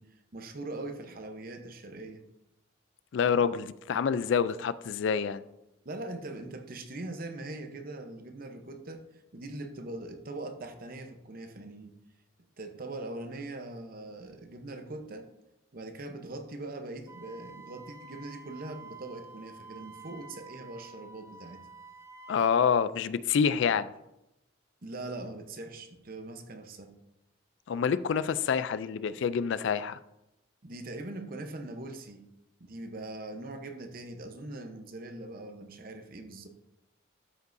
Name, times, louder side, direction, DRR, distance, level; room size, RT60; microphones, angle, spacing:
voice 1, 0.0-2.2 5.8-11.9 12.6-15.3 15.7-21.6 24.8-26.9 30.6-32.2 32.6-36.5, right 2 dB, 45° right, 7 dB, 0.8 m, -41 dB
voice 2, 3.1-5.4 22.3-23.9 27.7-30.0, left 6 dB, 65° left, 15 dB, 0.3 m, -27 dB
Wind instrument woodwind instrument, 17.1-22.7, right 4 dB, 15° right, 0.4 m, -49 dB
12.5 x 5.4 x 2.6 m, 0.88 s
head